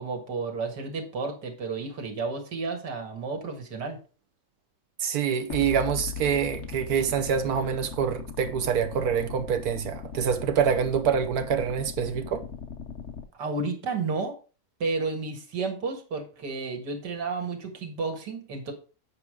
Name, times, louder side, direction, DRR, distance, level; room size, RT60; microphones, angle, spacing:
voice 1, 0.0-4.0 13.3-14.3 14.8-18.7, right 4 dB, 85° right, 2.3 m, -32 dB
voice 2, 5.0-12.5, right 7 dB, 70° right, 1.4 m, -26 dB
sound 1, 5.5-13.2, left 6 dB, 50° left, 1.1 m, -38 dB
8.4 x 5.0 x 4.9 m
omnidirectional pair, 1.8 m